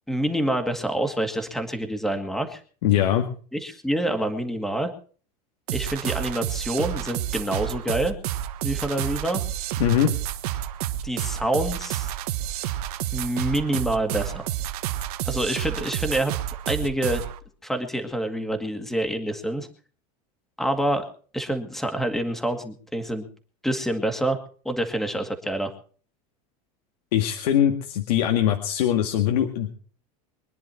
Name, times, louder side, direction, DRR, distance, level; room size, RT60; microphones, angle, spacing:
voice 1, 0.1-2.6 3.5-4.9 5.7-8.2 8.6-9.4 11.0-12.1 13.1-14.5 15.3-16.3 16.7-17.2 17.6-19.7 20.6-21.1 21.3-23.3 23.6-24.4 24.7-25.7, right 1 dB, ahead, 7 dB, 2.0 m, -27 dB
voice 2, 2.8-3.3 9.8-10.1 27.1-29.7, left 10 dB, 85° left, 3 dB, 2.1 m, -22 dB
sound 1, 5.7-17.4, right 12 dB, 75° right, 1.5 m, -30 dB
23.5 x 10.5 x 4.5 m, 0.42 s
supercardioid pair, 155°, 20 cm